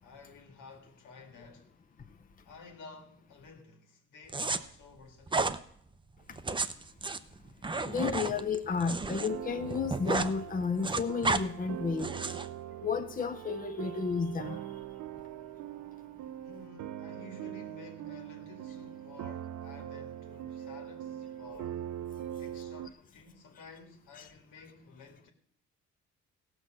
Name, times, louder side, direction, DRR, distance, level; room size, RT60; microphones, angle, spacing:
voice 1, 0.0-1.8 2.4-5.6 16.4-21.9 22.4-25.3, left 3 dB, 85° left, 2.1 m, -52 dB
sound 1, 4.3-4.6 5.3-5.6 6.3-9.3 9.6-10.3 10.6-11.4 12.0-12.5, right 3 dB, 15° right, 0.6 m, -32 dB
voice 2, 7.8-12.1 12.8-14.6, left 5 dB, 30° left, 0.7 m, -32 dB
sound 2, 9.1-22.9, right 11 dB, 75° right, 0.6 m, -42 dB
16.0 x 6.3 x 6.3 m
cardioid pair, 90°, 30 cm